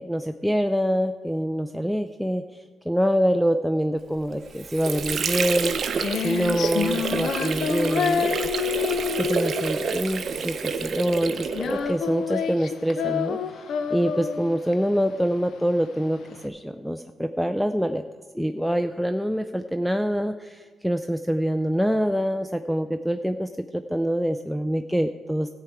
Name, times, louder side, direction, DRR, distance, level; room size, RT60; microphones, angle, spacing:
voice 1, 0.0-2.4 2.9-5.8 6.2-8.5 9.2-13.4 13.9-18.0 18.3-25.5, equal, ahead, 9 dB, 0.4 m, -25 dB
Water / Sink (filling or washing), 4.3-11.9, right 5 dB, 55° right, 0.7 m, -29 dB
Female singing, 5.5-16.4, left 7 dB, 70° left, 0.7 m, -29 dB
14.0 x 4.7 x 8.1 m, 1.5 s
cardioid pair, 90°, 0 cm